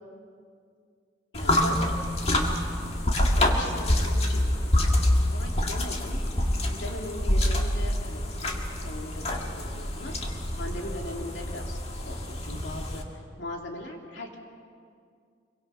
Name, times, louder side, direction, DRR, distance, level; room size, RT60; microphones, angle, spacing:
voice 1, 1.3-1.8 2.2-2.5 3.4-6.2 6.7-10.1 10.6-13.0 13.4-14.4, left 1 dB, 75° left, 0 dB, 3.0 m, -40 dB
sound 1, 1.3-13.0, left 1 dB, 35° left, 1.9 m, -26 dB
26.5 x 23.5 x 5.8 m, 2.2 s
head